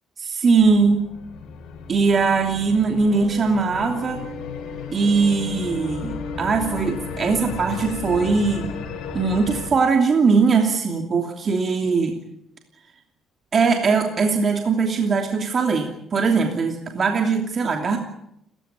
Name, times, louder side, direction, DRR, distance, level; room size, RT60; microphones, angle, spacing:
voice 1, 0.2-1.1 1.9-4.2 4.9-8.7 9.1-12.1 13.5-18.0, right 4 dB, 40° right, 3 dB, 2.9 m, -20 dB
sound 1, 0.6-9.7, left 5 dB, 75° left, 5.3 m, -34 dB
30.0 x 15.5 x 9.1 m, 0.79 s
cardioid pair, 110°, 0 cm